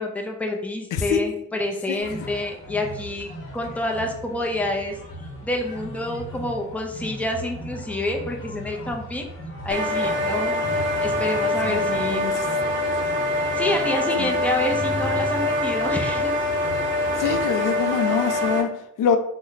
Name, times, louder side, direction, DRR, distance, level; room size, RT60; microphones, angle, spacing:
voice 1, 0.0-5.0 5.4-9.3 9.6-10.6 11.0-12.3 13.5-16.4, left 1 dB, 5° left, 0.5 m, -28 dB
voice 2, 0.9-1.3 1.9-2.1 11.7-12.5 14.2-14.3 17.2-19.2, left 7 dB, 90° left, 0.5 m, -25 dB
sound 1, 2.0-17.4, equal, 45° left, 1.0 m, -37 dB
sound 2, 9.7-18.6, left 1 dB, 40° right, 0.7 m, -24 dB
3.1 x 2.1 x 3.8 m
cardioid pair, 120°, 30 cm